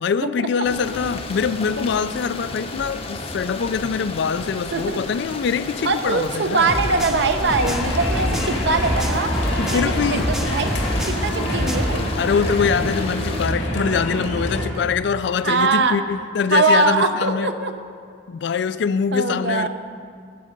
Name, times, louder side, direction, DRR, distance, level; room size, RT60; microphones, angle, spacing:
voice 1, 0.0-6.7 8.2-8.3 9.6-10.3 12.2-17.5 18.3-19.7, left 6 dB, 60° left, 14 dB, 0.3 m, -23 dB
sound 1, 0.6-13.5, left 2 dB, 30° left, 0.7 m, -33 dB
voice 2, 5.8-9.3 9.7-10.7 11.1-12.1 15.4-16.0 16.5-17.7 19.1-19.7, right 3 dB, 65° right, 7 dB, 0.7 m, -22 dB
sound 2, 6.7-12.0, equal, ahead, 0.5 m, -27 dB
sound 3, 7.6-14.6, equal, 90° left, 2.1 m, -26 dB
13.5 x 7.5 x 5.2 m, 2.2 s
head